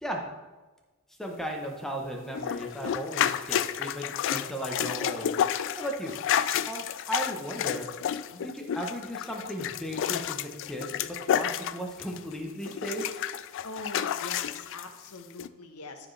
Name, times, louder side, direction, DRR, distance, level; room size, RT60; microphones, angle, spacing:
voice 1, 1.2-5.3 5.8-6.2 6.7-7.9 8.3-13.1, equal, ahead, 1 dB, 0.9 m, -36 dB
sound 1, 2.3-12.3 12.6-14.8 15.4-15.5, left 10 dB, 60° left, 0.3 m, -30 dB
voice 2, 13.6-16.1, left 2 dB, 80° left, 5 dB, 1.1 m, -42 dB
14.0 x 4.9 x 3.3 m, 1.2 s
head